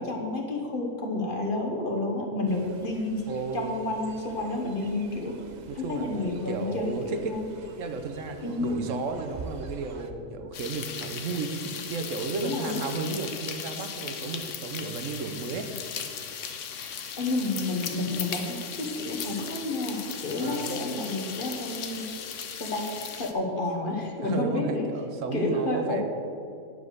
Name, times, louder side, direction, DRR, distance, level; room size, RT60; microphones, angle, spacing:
voice 1, 0.0-3.3 3.5-5.4 5.7-7.5 8.4-8.9 12.4-12.8 17.2-22.1 22.6-22.9 23.2-24.9 25.3-26.0, left 2 dB, 40° left, 1 dB, 1.2 m, -30 dB
Fowl, 2.5-10.1, right 3 dB, 90° right, 0.3 m, -47 dB
voice 2, 3.3-3.7 5.7-7.3 7.8-15.7 20.4-20.7 24.2-26.0, right 4 dB, 65° right, 7 dB, 1.0 m, -33 dB
sound 1, 10.5-23.3, left 7 dB, 65° left, 1.0 m, -37 dB
9.5 x 4.8 x 6.4 m, 2.6 s
omnidirectional pair, 1.5 m